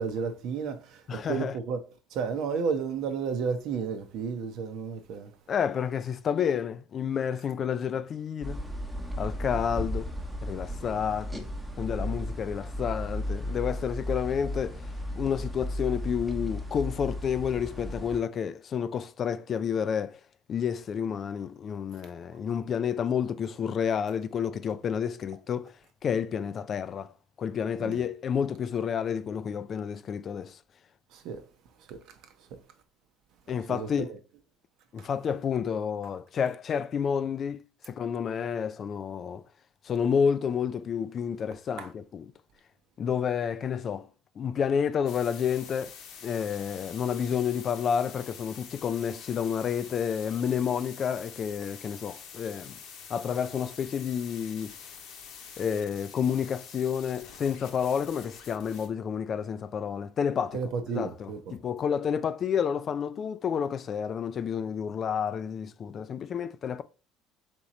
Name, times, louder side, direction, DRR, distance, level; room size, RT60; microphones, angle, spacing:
voice 1, 0.0-1.8 2.1-5.3 27.8-28.0 31.1-31.4 31.9-32.0 32.5-32.6 33.7-34.2 41.8-41.9 60.5-61.5, right 5 dB, 65° right, 0.7 m, -32 dB
voice 2, 1.1-1.5 5.5-8.6 9.2-10.1 10.4-11.5 11.8-14.9 15.2-20.2 20.5-25.7 26.0-27.1 27.4-30.6 33.5-34.1 34.9-39.4 39.8-42.3 43.0-44.1 44.4-45.9 46.2-52.8 53.1-54.8 55.6-60.6 60.9-66.8, left 7 dB, 45° left, 0.3 m, -30 dB
sound 1, 8.4-18.2, left 1 dB, 10° right, 0.9 m, -35 dB
sound 2, 45.1-58.9, left 7 dB, 70° left, 0.9 m, -47 dB
3.6 x 3.0 x 4.1 m
supercardioid pair, 85°, 0 cm